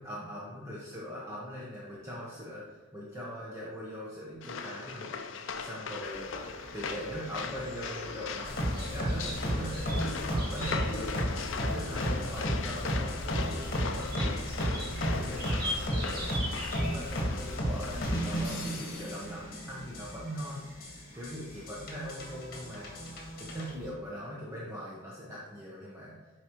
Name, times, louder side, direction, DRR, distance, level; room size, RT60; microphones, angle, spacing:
voice 1, 0.0-2.6 2.9-6.3 6.7-22.9 23.4-26.2, equal, 15° right, -7 dB, 0.9 m, -41 dB
sound 1, 4.4-19.0, left 5 dB, 65° left, 0.5 m, -40 dB
sound 2, 6.0-23.9, equal, 45° right, 1.7 m, -44 dB
sound 3, 8.4-23.7, equal, 45° left, 1.5 m, -33 dB
7.7 x 4.9 x 3.0 m, 1.3 s
head